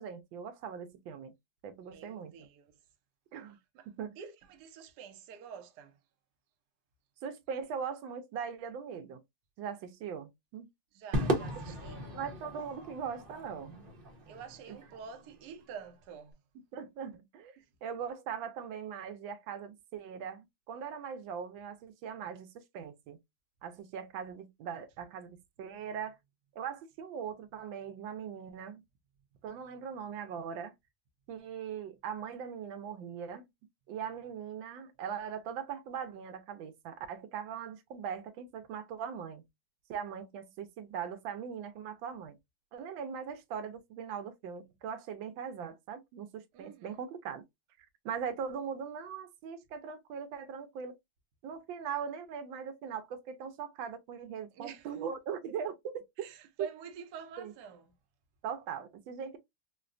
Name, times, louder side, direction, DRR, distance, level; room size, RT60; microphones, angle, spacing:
voice 1, 0.0-1.3 1.6-2.3 3.3-3.6 3.9-4.2 7.2-9.2 9.6-10.7 12.1-13.9 16.7-17.5 17.8-23.2 23.6-26.2 26.5-28.8 29.4-30.7 31.3-33.5 33.9-39.4 39.9-42.4 42.7-47.4 48.0-51.0 51.4-56.3 57.4-57.5 58.4-59.4, right 7 dB, 90° right, 1.4 m, -40 dB
voice 2, 1.8-2.7 3.7-6.0 10.9-12.0 14.3-16.4 17.6-17.7 46.5-47.1 54.5-54.9 56.2-57.9, right 7 dB, 65° right, 1.2 m, -48 dB
Crowd / Fireworks, 11.1-15.6, right 1 dB, 40° right, 0.8 m, -36 dB
4.6 x 2.2 x 2.4 m
omnidirectional pair, 2.1 m